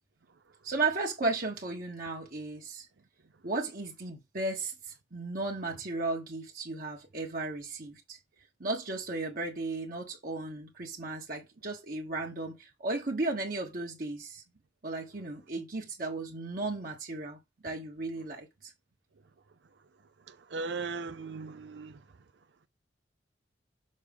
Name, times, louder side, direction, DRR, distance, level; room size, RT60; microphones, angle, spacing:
voice 1, 0.6-2.9 3.4-8.2 8.6-14.4 14.8-18.7, right 3 dB, 50° right, 1.3 m, -35 dB
voice 2, 20.3-22.0, right 4 dB, 85° right, 0.6 m, -38 dB
6.6 x 4.8 x 3.5 m
head